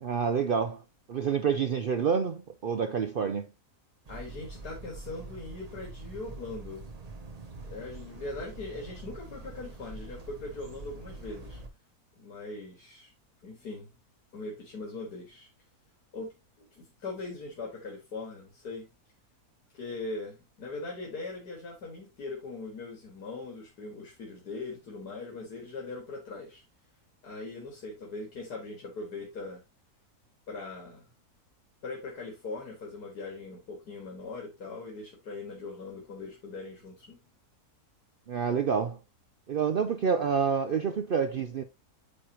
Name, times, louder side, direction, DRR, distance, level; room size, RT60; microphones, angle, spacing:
voice 1, 0.0-0.8 1.1-3.5 38.3-39.0 39.5-41.6, right 6 dB, 70° right, 0.5 m, -28 dB
sound 1, 4.0-11.7, right 2 dB, 35° right, 0.7 m, -45 dB
voice 2, 4.1-6.9 7.6-11.6 12.2-13.1 13.4-13.9 14.3-15.5 16.1-18.9 19.7-26.6 27.2-29.6 30.5-31.1 31.8-37.2, left 3 dB, 90° left, 2.4 m, -40 dB
8.5 x 4.5 x 2.9 m
omnidirectional pair, 1.6 m